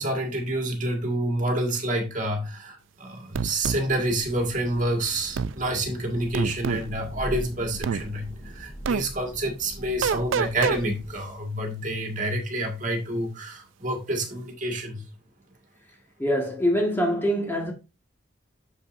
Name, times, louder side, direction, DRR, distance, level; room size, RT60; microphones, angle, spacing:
voice 1, 0.0-15.0, right 1 dB, 40° right, 1.8 m, -28 dB
sound 1, 3.3-3.8 5.3-5.5 6.3-6.9 7.8-8.0 8.8-9.0 10.0-10.8, right 6 dB, 80° right, 0.4 m, -26 dB
Thunder / Rain, 3.6-11.5, equal, 15° right, 3.5 m, -41 dB
voice 2, 16.2-17.7, equal, 10° left, 1.5 m, -24 dB
8.5 x 6.9 x 2.6 m
head